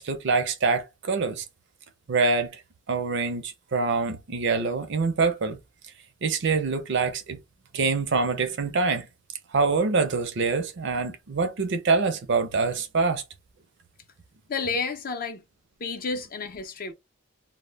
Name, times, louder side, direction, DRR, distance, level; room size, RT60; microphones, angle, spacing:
voice 1, 0.0-1.4 2.1-2.6 2.9-5.6 6.2-7.4 7.7-9.1 9.5-13.2, right 4 dB, 55° right, 0.5 m, -25 dB
voice 2, 14.5-15.4 15.8-16.9, left 4 dB, 45° left, 0.5 m, -31 dB
2.1 x 2.0 x 3.2 m
head